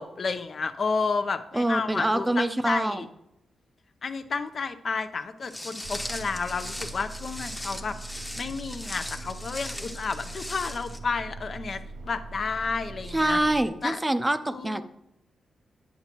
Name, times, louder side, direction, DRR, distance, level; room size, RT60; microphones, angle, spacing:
voice 1, 0.0-3.1 4.0-13.4 13.8-14.0 14.5-14.8, left 4 dB, 50° left, 10 dB, 0.7 m, -31 dB
voice 2, 1.5-3.0 13.1-14.8, right 1 dB, 15° right, 10 dB, 0.5 m, -25 dB
Walk footsteps, 5.5-11.0, left 1 dB, 10° left, 0.9 m, -39 dB
sound 1, 5.8-13.7, right 2 dB, 85° right, 0.6 m, -41 dB
9.4 x 7.1 x 3.0 m, 0.86 s
cardioid pair, 80°, 0 cm